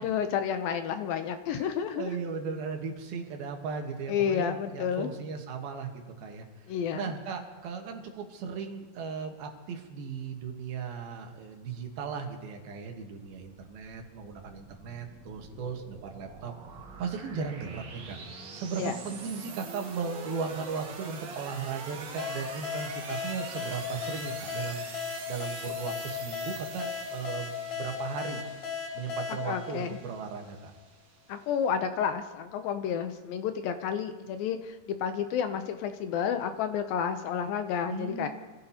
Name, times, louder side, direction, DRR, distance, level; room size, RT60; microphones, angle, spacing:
voice 1, 0.0-2.1 4.1-5.1 6.7-7.1 18.8-18.9 29.3-30.0 31.3-38.3, left 8 dB, 75° left, 8 dB, 2.3 m, -30 dB
voice 2, 2.0-6.5 6.9-16.5 17.0-18.2 18.5-24.9 25.3-28.4 28.9-30.7 37.9-38.3, right 5 dB, 75° right, 3 dB, 3.1 m, -37 dB
sound 1, 13.3-31.6, right 4 dB, 55° right, 2.7 m, -45 dB
sound 2, 22.2-30.6, left 7 dB, 60° left, 2.3 m, -37 dB
26.5 x 15.5 x 2.9 m, 1.3 s
omnidirectional pair, 4.5 m